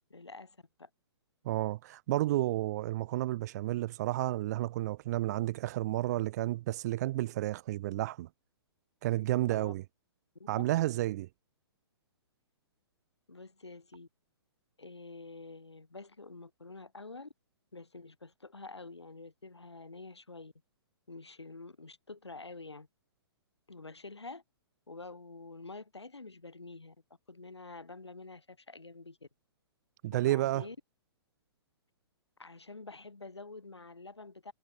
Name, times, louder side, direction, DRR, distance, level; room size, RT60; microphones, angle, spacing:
voice 1, 0.1-0.9 9.5-9.7 10.4-10.6 13.3-14.1 14.8-17.3 17.7-20.5 21.1-22.9 23.7-24.4 24.9-27.0 27.3-29.3 30.1-30.8 32.4-34.5, left 3 dB, 80° left, 3.1 m, -48 dB
voice 2, 1.4-8.3 9.0-9.8 10.5-11.3 30.0-30.7, right 16 dB, 40° right, 0.7 m, -31 dB
figure-of-eight pair, 120°, 14 cm